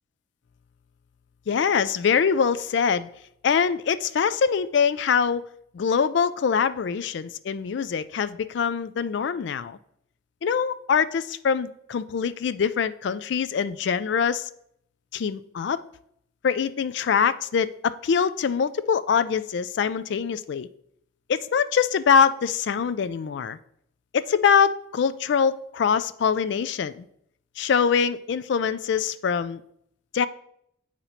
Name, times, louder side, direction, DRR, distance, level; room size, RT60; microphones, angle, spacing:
voice 1, 1.5-3.1 3.4-5.4 5.7-9.8 10.4-14.5 15.1-15.8 16.4-20.7 21.3-23.6 24.1-27.1 27.6-29.6 30.1-30.3, left 6 dB, 60° left, 0.3 m, -23 dB
8.0 x 3.0 x 5.6 m
head